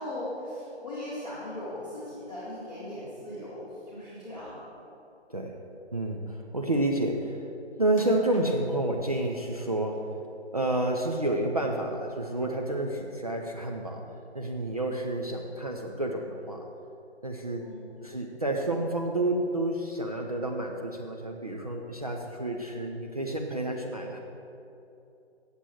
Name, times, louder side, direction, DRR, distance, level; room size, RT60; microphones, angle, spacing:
voice 1, 0.0-4.6 17.6-17.9, left 1 dB, ahead, -21 dB, 0.8 m, -38 dB
voice 2, 5.3-5.6 5.9-7.5 7.8-10.1 10.5-14.0 14.3-16.7 17.2-17.7 18.0-24.2, right 1 dB, 35° right, 0 dB, 0.6 m, -30 dB
sound 1, 7.9-8.9 9.6-10.3 10.7-11.6 12.0-12.1 12.7-12.8, left 2 dB, 30° left, 0.9 m, -53 dB
8.2 x 7.6 x 8.1 m, 2.8 s
hypercardioid pair, 170°, 34 cm